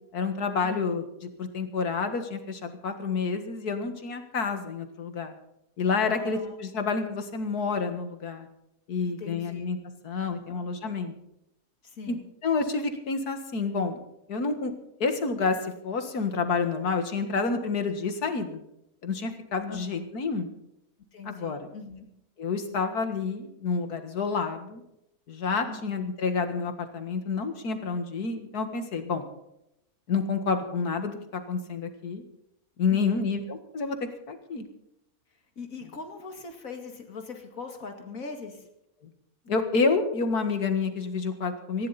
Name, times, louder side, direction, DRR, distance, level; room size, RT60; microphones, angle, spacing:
voice 1, 0.1-5.3 5.8-8.5 8.9-9.8 10.0-11.1 12.1-12.2 12.4-14.0 14.3-14.7 15.0-18.6 19.0-20.5 21.3-21.6 22.4-24.8 25.3-29.2 30.1-32.2 32.8-34.7 39.5-41.9, left 4 dB, 90° left, 7 dB, 2.2 m, -29 dB
voice 2, 6.0-6.6 9.0-9.6 10.2-10.7 11.8-12.2 19.7-20.1 21.1-22.1 25.7-25.9 32.9-33.2 35.6-38.7, left 4 dB, 65° left, 5 dB, 2.6 m, -41 dB
19.0 x 15.5 x 4.2 m, 0.81 s
omnidirectional pair, 1.6 m